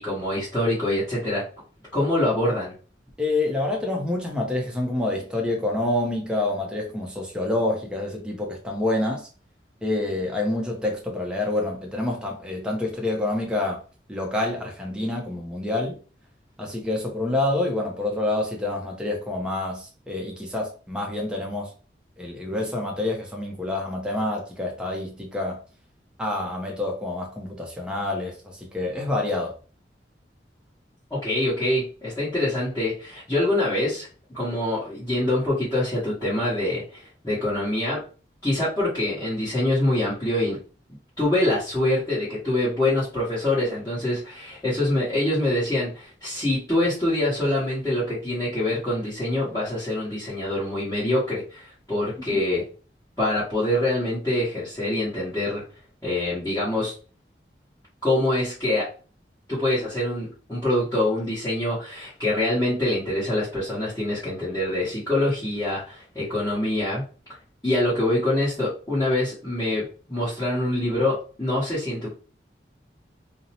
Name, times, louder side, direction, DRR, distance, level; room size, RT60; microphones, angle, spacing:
voice 1, 0.0-1.4 1.9-2.7 31.1-38.0 38.4-40.6 41.2-52.6 53.2-55.6 56.0-56.9 58.0-58.9 59.5-67.0 67.6-72.1, left 1 dB, 15° left, 1.1 m, -25 dB
voice 2, 3.2-9.3 9.8-13.8 14.1-16.0 16.6-21.7 22.2-25.6 26.2-29.6 52.2-52.4, left 2 dB, 5° right, 0.5 m, -27 dB
2.6 x 2.0 x 2.8 m
head